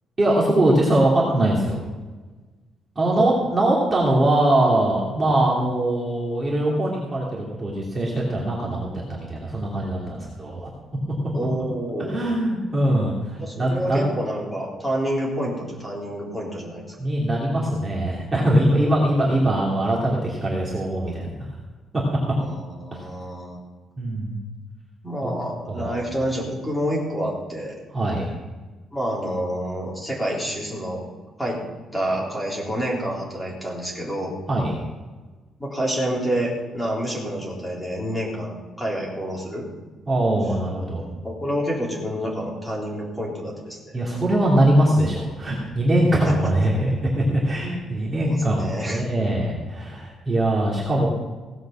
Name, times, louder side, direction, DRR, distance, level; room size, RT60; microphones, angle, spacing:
voice 1, 0.2-1.8 3.0-10.7 12.1-14.0 17.0-21.3 22.9-23.0 24.0-24.4 25.7-26.0 27.9-28.3 34.5-34.7 40.1-41.0 43.9-51.1, right 1 dB, 20° right, -4 dB, 2.8 m, -22 dB
voice 2, 11.3-12.3 13.4-16.8 22.4-23.6 25.0-27.7 28.9-31.0 31.4-31.6 31.9-34.3 35.6-39.7 41.2-43.9 46.1-46.5 48.3-49.0, equal, ahead, -4 dB, 3.8 m, -28 dB
17.0 x 7.8 x 7.3 m, 1.3 s
cardioid pair, 160°, 0 cm